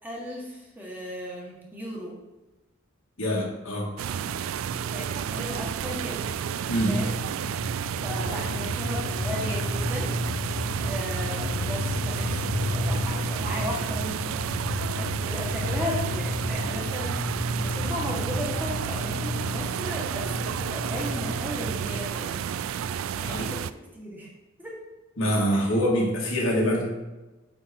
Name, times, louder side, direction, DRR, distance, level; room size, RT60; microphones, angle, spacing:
voice 1, 0.0-2.1 4.9-6.3 6.9-7.1 8.0-10.1 10.8-14.4 15.0-22.4 23.1-24.3 24.6-24.8 25.5-25.7, equal, 10° right, -4 dB, 1.7 m, -36 dB
voice 2, 3.2-3.9 6.7-6.9 23.2-23.5 25.2-26.8, equal, 90° left, -4 dB, 2.2 m, -25 dB
sound 1, 4.0-23.7, right 7 dB, 85° right, 0.3 m, -31 dB
sound 2, 6.7-22.0, left 2 dB, 50° left, 0.5 m, -33 dB
8.8 x 3.9 x 4.5 m, 1.1 s
head